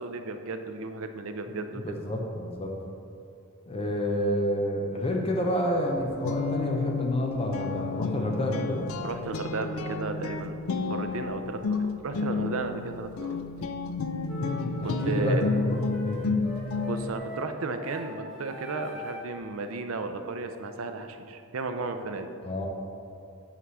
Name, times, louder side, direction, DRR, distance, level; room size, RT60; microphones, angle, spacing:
voice 1, 0.0-2.0 9.0-10.6 10.8-13.4 14.8-15.4 16.8-22.3, right 3 dB, 65° right, 7 dB, 0.5 m, -34 dB
voice 2, 1.5-2.7 3.7-8.9 14.8-16.3 22.4-22.7, equal, 25° left, 1 dB, 0.7 m, -29 dB
Guitar, 5.9-17.2, left 4 dB, 65° left, 0.4 m, -31 dB
sound 1, 14.3-19.4, left 1 dB, ahead, 1.2 m, -41 dB
5.7 x 4.7 x 6.2 m, 2.5 s
head